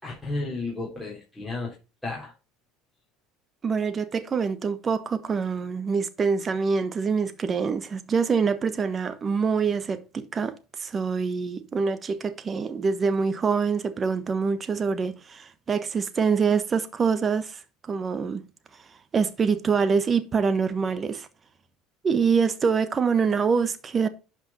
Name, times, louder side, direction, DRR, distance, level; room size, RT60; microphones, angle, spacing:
voice 1, 0.0-1.7 2.0-2.3, left 2 dB, 10° left, 3.9 m, -32 dB
voice 2, 3.6-17.6 17.9-18.4 19.1-21.3 22.0-24.1, right 5 dB, 30° right, 1.2 m, -25 dB
11.5 x 5.2 x 4.2 m
supercardioid pair, 95°, 0 cm